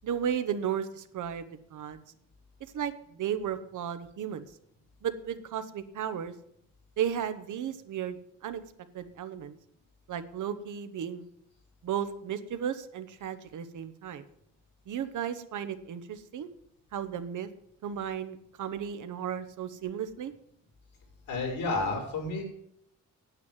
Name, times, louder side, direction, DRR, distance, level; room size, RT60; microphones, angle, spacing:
voice 1, 0.0-2.0 2.7-4.4 5.0-6.3 7.0-8.6 8.9-9.5 10.1-11.3 11.8-14.2 14.9-16.5 16.9-17.5 17.8-20.3, right 8 dB, 65° right, 10 dB, 1.1 m, -34 dB
voice 2, 21.3-22.4, left 3 dB, 85° left, -2 dB, 5.3 m, -30 dB
9.5 x 9.2 x 7.3 m, 0.73 s
cardioid pair, 120°, 32 cm